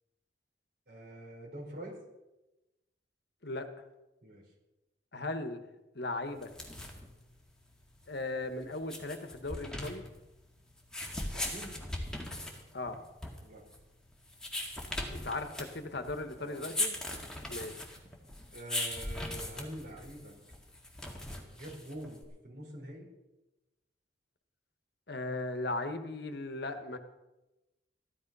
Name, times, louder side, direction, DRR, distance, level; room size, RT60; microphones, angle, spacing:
voice 1, 0.9-2.0 4.2-4.5 11.0-11.7 13.4-13.6 16.3-16.7 17.1-17.3 18.5-20.3 21.5-23.1, right 1 dB, 55° right, -2 dB, 4.6 m, -46 dB
voice 2, 5.1-5.6 5.9-6.5 8.1-10.0 12.7-13.0 15.1-17.0 17.5-17.7 25.1-27.0, left 2 dB, 55° left, 8 dB, 1.3 m, -37 dB
sound 1, 6.4-22.2, left 1 dB, 5° left, 1.9 m, -40 dB
14.5 x 12.0 x 5.5 m, 1.0 s
head